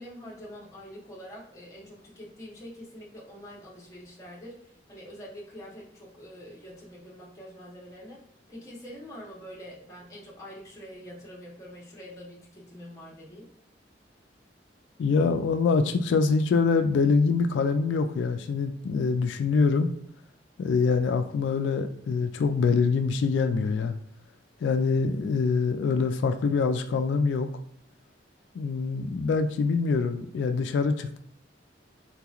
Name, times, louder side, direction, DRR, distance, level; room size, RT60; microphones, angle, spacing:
voice 1, 0.0-13.5, equal, 20° left, -5 dB, 0.9 m, -45 dB
voice 2, 15.0-19.9 20.6-23.9 24.6-27.5 28.6-31.2, left 4 dB, 85° left, 7 dB, 0.3 m, -24 dB
3.9 x 2.8 x 2.4 m, 0.69 s
head